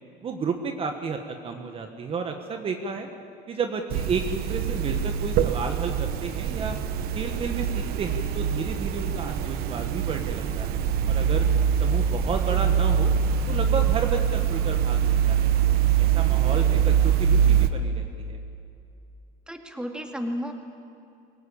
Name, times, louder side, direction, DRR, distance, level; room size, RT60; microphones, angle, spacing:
voice 1, 0.2-3.1 3.5-6.8 7.1-10.8 11.1-11.5 11.8-13.1 13.5-15.5 16.0-18.4, right 5 dB, 30° right, 5 dB, 1.5 m, -32 dB
sound 1, 3.9-17.7, right 8 dB, 60° right, 1.3 m, -23 dB
voice 2, 19.5-20.5, equal, 5° right, 3 dB, 2.1 m, -32 dB
22.5 x 18.0 x 8.6 m, 2.6 s
cardioid pair, 130°, 18 cm